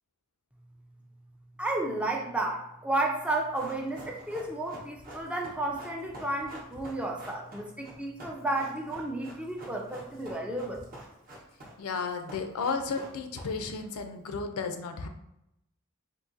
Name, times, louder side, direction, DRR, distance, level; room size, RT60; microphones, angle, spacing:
voice 1, 1.6-10.9, right 2 dB, 5° right, 1 dB, 0.3 m, -32 dB
Run, 3.2-13.8 14.1-14.2, right 1 dB, 40° right, 0.8 m, -47 dB
voice 2, 11.8-15.1, left 4 dB, 85° left, 7 dB, 0.4 m, -33 dB
3.8 x 2.6 x 2.5 m, 0.85 s
head